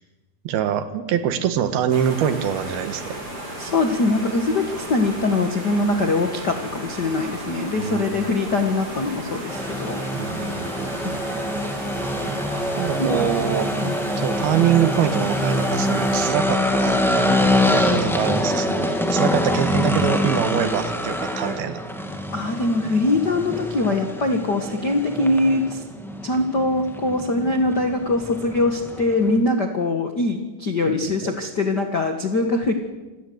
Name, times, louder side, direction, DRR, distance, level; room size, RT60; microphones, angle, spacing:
voice 1, 0.4-3.1 7.7-8.1 10.1-11.2 12.8-13.7 14.2-17.0 17.9-21.8 30.9-31.4, right 9 dB, 75° right, 10 dB, 3.3 m, -24 dB
sound 1, 1.9-16.3, right 1 dB, 35° right, 8.5 m, -34 dB
voice 2, 3.6-10.0 13.0-13.1 13.8-13.9 22.3-25.8 26.2-32.7, left 2 dB, 50° left, 5 dB, 1.2 m, -22 dB
sound 2, 9.5-29.4, left 1 dB, ahead, 0.8 m, -25 dB
27.0 x 18.0 x 8.0 m, 1.2 s
omnidirectional pair, 4.5 m